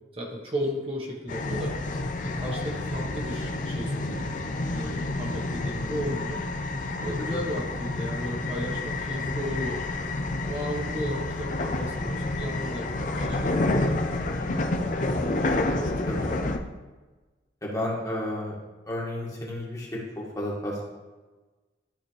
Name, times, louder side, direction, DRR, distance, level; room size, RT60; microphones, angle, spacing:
voice 1, 0.1-1.7 2.2-4.3 4.7-9.8 10.4-13.8 14.4-15.8, equal, 30° right, -2 dB, 1.2 m, -35 dB
sound 1, 1.3-16.6, left 2 dB, 45° left, 0.5 m, -29 dB
voice 2, 14.2-14.6 16.1-16.3 17.6-18.6 18.9-20.9, left 1 dB, 20° left, -4 dB, 1.6 m, -33 dB
12.0 x 4.2 x 3.2 m, 1.2 s
head